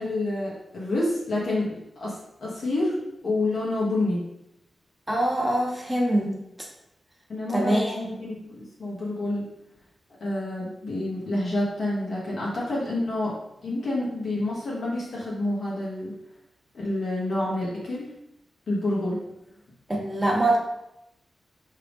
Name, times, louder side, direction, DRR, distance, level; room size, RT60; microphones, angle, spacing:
voice 1, 0.0-4.2 7.3-9.5 10.2-16.2 16.7-18.1 18.7-19.2, left 2 dB, 65° left, -6 dB, 1.0 m, -28 dB
voice 2, 5.1-6.3 7.5-8.1 19.9-20.6, right 1 dB, 10° right, -1 dB, 0.6 m, -24 dB
4.9 x 2.8 x 3.4 m, 0.84 s
wide cardioid pair, 150°, 0 cm